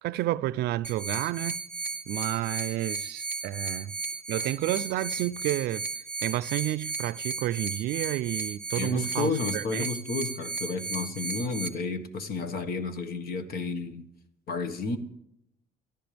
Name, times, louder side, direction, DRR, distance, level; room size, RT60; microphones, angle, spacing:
voice 1, 0.0-1.6 2.1-4.0 4.3-5.8 6.2-9.9, right 14 dB, 75° right, 0.4 m, -30 dB
sound 1, 0.8-11.7, right 4 dB, 10° right, 1.4 m, -35 dB
voice 2, 8.8-14.1 14.5-15.0, left 4 dB, 65° left, 1.5 m, -32 dB
28.5 x 13.5 x 3.4 m
cardioid pair, 110°, 17 cm